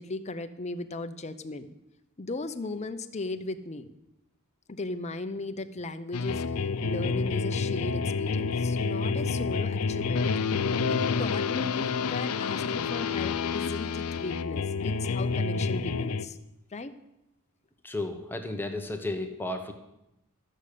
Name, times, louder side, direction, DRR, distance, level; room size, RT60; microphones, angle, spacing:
voice 1, 0.0-1.7 2.2-3.9 4.7-10.3 10.9-16.4 16.7-17.0, left 2 dB, 30° left, 8 dB, 0.7 m, -37 dB
sound 1, 6.1-16.3, left 5 dB, 80° left, 0.6 m, -29 dB
voice 2, 17.8-19.7, left 2 dB, 10° left, 4 dB, 1.0 m, -33 dB
13.5 x 6.4 x 8.4 m, 0.89 s
head